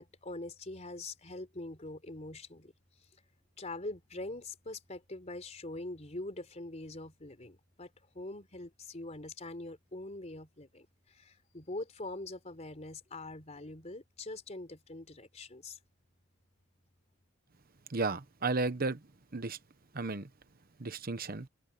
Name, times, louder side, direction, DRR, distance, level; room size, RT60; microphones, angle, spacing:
voice 1, 0.0-2.7 3.6-7.9 8.1-15.8, left 2 dB, 35° left, 3.9 m, -43 dB
voice 2, 17.9-19.0 19.3-19.6 19.9-20.3 20.8-21.5, right 3 dB, 45° right, 1.0 m, -33 dB
open air
head